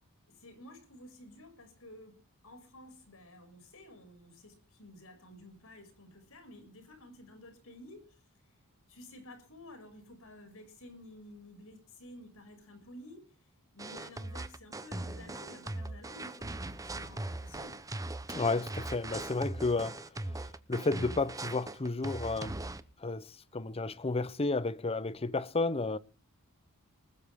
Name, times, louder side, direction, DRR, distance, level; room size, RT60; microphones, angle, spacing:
voice 1, 0.3-8.2 8.9-13.4 13.7-17.8, left 1 dB, 65° left, 6.6 m, -52 dB
sound 1, 13.8-22.8, right 2 dB, 15° right, 0.9 m, -40 dB
voice 2, 18.3-20.0 20.7-22.6 23.0-26.0, left 3 dB, 25° left, 0.8 m, -32 dB
20.5 x 13.0 x 3.7 m
head